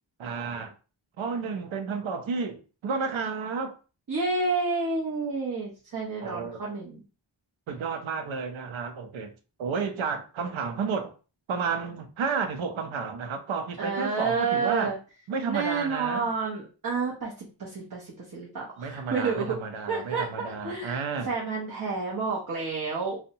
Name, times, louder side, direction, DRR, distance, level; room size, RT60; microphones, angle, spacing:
voice 1, 0.2-0.7 1.2-3.7 6.2-6.6 7.7-9.3 9.6-11.1 11.5-14.9 15.3-16.3 18.8-21.3, right 5 dB, 85° right, 0.6 m, -31 dB
voice 2, 4.1-7.0 13.8-15.0 15.5-19.6 19.9-23.2, right 4 dB, 45° right, 0.7 m, -30 dB
2.6 x 2.1 x 2.7 m
wide cardioid pair, 100°, 47 cm